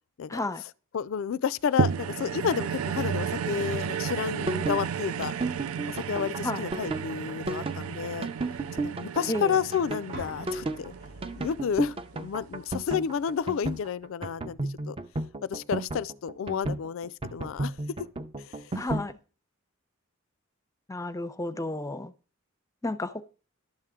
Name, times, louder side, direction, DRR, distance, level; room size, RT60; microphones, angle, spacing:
voice 1, 0.3-0.6 6.4-6.7 9.3-9.5 18.8-19.2 20.9-22.1 22.8-23.2, left 1 dB, 15° left, 0.6 m, -32 dB
voice 2, 0.9-5.3 5.9-8.3 8.8-10.9 11.3-14.6 14.9-15.0 15.4-18.1 18.5-18.6, left 7 dB, 65° left, 0.4 m, -31 dB
sound 1, 1.8-12.3 12.9-13.0, right 7 dB, 85° right, 0.4 m, -33 dB
sound 2, 4.0-19.1, right 2 dB, 25° right, 0.6 m, -33 dB
sound 3, 10.1-14.1, equal, 60° right, 1.0 m, -47 dB
12.0 x 8.0 x 3.7 m
head